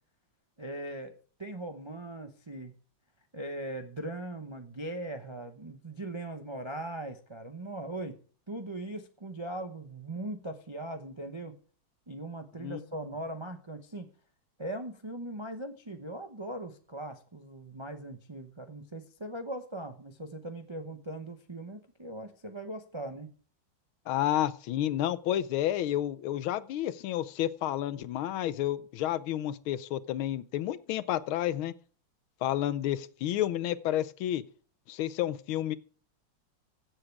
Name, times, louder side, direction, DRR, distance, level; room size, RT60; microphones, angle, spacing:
voice 1, 0.6-1.1 1.4-2.7 3.3-8.2 8.5-11.6 12.1-14.1 14.6-23.3, right 1 dB, 50° right, 5 dB, 0.3 m, -40 dB
voice 2, 24.1-31.7 32.4-34.4 34.9-35.8, left 12 dB, 85° left, 15 dB, 1.6 m, -30 dB
15.5 x 7.6 x 4.7 m, 0.42 s
omnidirectional pair, 2.2 m